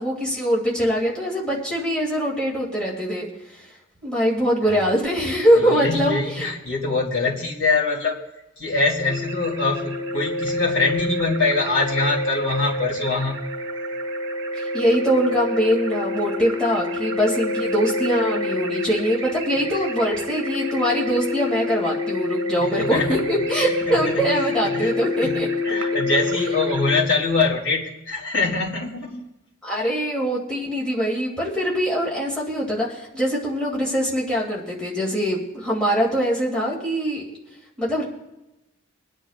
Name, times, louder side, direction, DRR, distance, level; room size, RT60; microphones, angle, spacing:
voice 1, 0.0-3.3 4.0-6.5 14.6-25.5 29.6-37.2 37.8-38.0, equal, 5° left, -5 dB, 2.5 m, -23 dB
voice 2, 5.5-8.2 8.6-13.4 19.7-19.8 22.6-23.2 23.6-24.9 25.2-29.2, left 3 dB, 55° left, -3 dB, 2.9 m, -24 dB
sound 1, 9.1-27.0, left 2 dB, 65° right, 1.1 m, -27 dB
24.5 x 10.0 x 2.5 m, 0.95 s
head